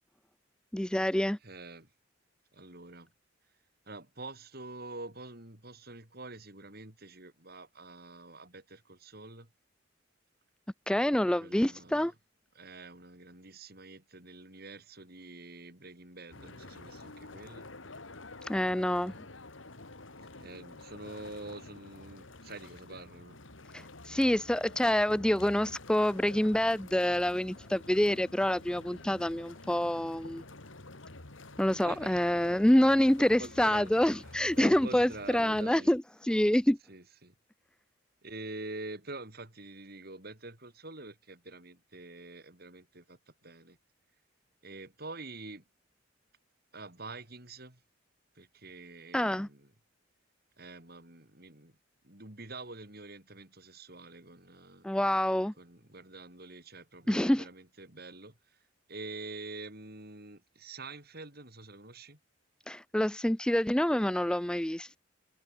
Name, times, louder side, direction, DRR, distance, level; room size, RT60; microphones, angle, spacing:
voice 1, 0.7-1.4 10.9-12.1 18.4-19.1 23.7-30.4 31.6-36.8 49.1-49.5 54.8-55.5 57.1-57.4 62.7-65.0, left 1 dB, 5° left, 0.4 m, -27 dB
voice 2, 1.4-1.9 2.5-3.1 3.9-9.5 11.4-12.1 12.5-17.7 20.4-23.4 31.8-32.3 33.2-33.9 34.2-35.9 36.9-37.3 38.2-43.8 44.6-45.6 46.7-47.8 48.3-49.7 50.6-51.7 52.0-54.9 55.6-58.3 58.9-62.2, right 2 dB, 50° right, 4.9 m, -46 dB
sound 1, 16.3-35.6, left 2 dB, 75° left, 2.9 m, -49 dB
head